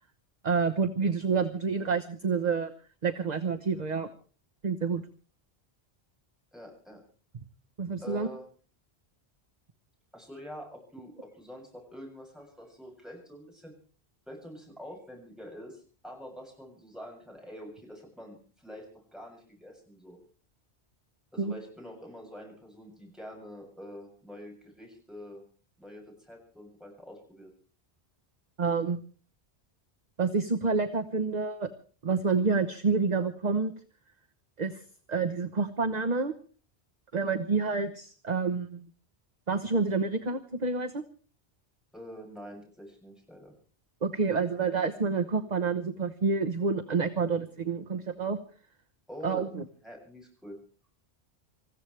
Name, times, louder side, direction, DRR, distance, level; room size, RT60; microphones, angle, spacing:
voice 1, 0.4-2.7 3.0-4.1 4.6-5.0 7.8-8.3 21.4-21.5 28.6-29.0 30.2-31.7 32.0-33.7 34.6-34.8 35.1-36.3 37.1-38.9 39.5-41.0 44.0-48.4 49.2-49.6, right 4 dB, 40° right, 6 dB, 1.1 m, -28 dB
voice 2, 6.5-7.0 8.0-8.4 10.1-13.7 14.3-20.2 21.3-25.4 25.8-27.5 41.9-43.5 49.1-49.5 49.8-50.6, equal, ahead, -1 dB, 7.4 m, -46 dB
27.5 x 15.0 x 3.3 m, 0.40 s
omnidirectional pair, 1.1 m